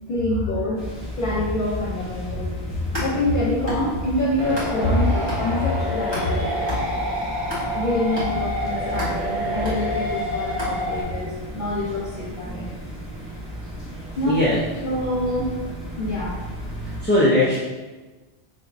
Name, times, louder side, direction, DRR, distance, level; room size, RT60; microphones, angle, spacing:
voice 1, 0.1-0.8 1.2-2.5 3.0-6.6 7.7-12.8 13.6-13.7 14.2-14.4 14.8-15.5 16.0-16.4, left 1 dB, 55° left, -5 dB, 0.8 m, -26 dB
sound 1, 0.8-17.0, equal, 5° right, 1.3 m, -35 dB
sound 2, 2.7-5.0 5.3-11.2, equal, 25° right, 1.5 m, -33 dB
sound 3, 4.4-11.0, left 1 dB, 45° right, 1.6 m, -28 dB
voice 2, 14.3-14.6 16.8-17.6, left 1 dB, 10° left, -8 dB, 0.6 m, -19 dB
4.7 x 3.0 x 2.6 m, 1.2 s
omnidirectional pair, 1.1 m